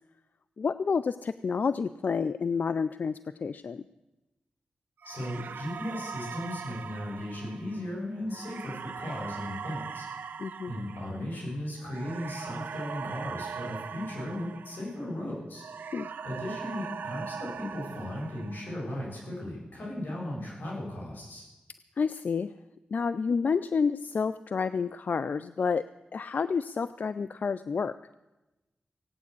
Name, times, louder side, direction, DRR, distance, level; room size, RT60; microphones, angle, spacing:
voice 1, 0.6-3.9 10.4-10.7 15.9-16.1 22.0-22.5 22.9-25.9 26.1-27.9, left 5 dB, 65° left, 14 dB, 0.4 m, -29 dB
voice 2, 5.0-10.1 10.7-15.6 16.2-21.4, left 1 dB, 80° left, -4 dB, 7.7 m, -36 dB
sound 1, 5.0-15.2 15.5-19.0, right 6 dB, 90° right, 0.7 m, -41 dB
17.0 x 9.4 x 8.3 m, 1.0 s
wide cardioid pair, 75°, 3 cm